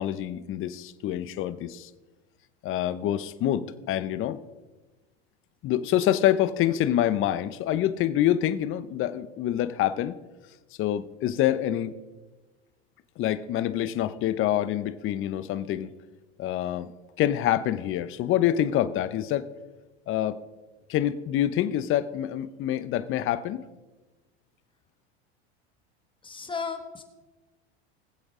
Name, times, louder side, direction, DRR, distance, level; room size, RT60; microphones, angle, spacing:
voice 1, 0.0-1.9 2.6-4.4 5.6-10.2 10.8-12.0 13.2-15.9 16.4-16.9 17.2-19.5 20.1-20.4 20.9-23.7, left 12 dB, 40° left, 13 dB, 0.7 m, -26 dB
voice 2, 26.2-27.0, left 5 dB, 15° left, 6 dB, 1.7 m, -34 dB
21.5 x 7.8 x 3.7 m, 1.2 s
hypercardioid pair, 105°, 33 cm